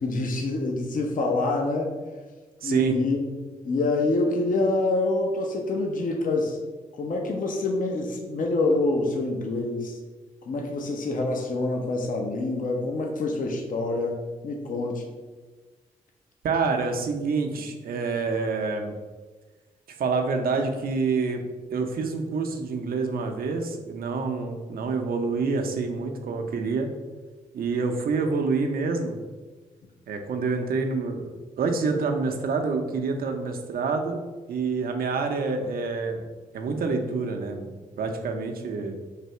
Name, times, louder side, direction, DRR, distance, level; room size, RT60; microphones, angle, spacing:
voice 1, 0.0-1.9 2.6-3.2 3.6-6.6 7.0-9.9 10.4-14.2 14.4-15.0, left 2 dB, 55° left, 1 dB, 0.7 m, -26 dB
voice 2, 2.6-3.0 16.4-18.9 20.0-21.5 21.7-26.9 27.5-29.2 30.1-34.2 34.5-36.2 36.5-38.9, right 4 dB, 65° right, 4 dB, 0.6 m, -27 dB
3.3 x 2.7 x 4.3 m, 1.3 s
supercardioid pair, 40°, 16 cm